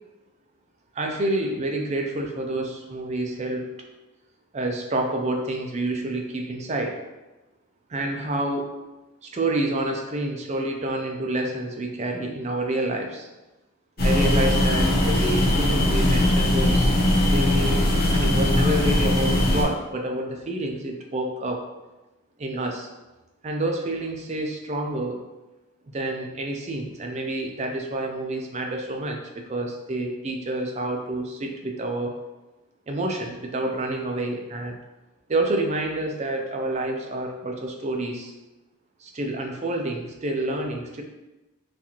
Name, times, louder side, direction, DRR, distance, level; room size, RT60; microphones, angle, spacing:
voice 1, 0.9-3.7 4.5-7.0 7.9-8.7 9.2-13.3 14.0-16.9 17.2-17.8 18.1-21.6 22.4-22.9 23.4-25.2 25.9-32.2 32.9-34.8 35.3-38.3 39.0-41.0, right 1 dB, 30° right, 2 dB, 0.4 m, -28 dB
sound 1, 14.0-19.6, left 1 dB, 45° left, 0.7 m, -20 dB
4.0 x 2.5 x 2.9 m, 1.1 s
head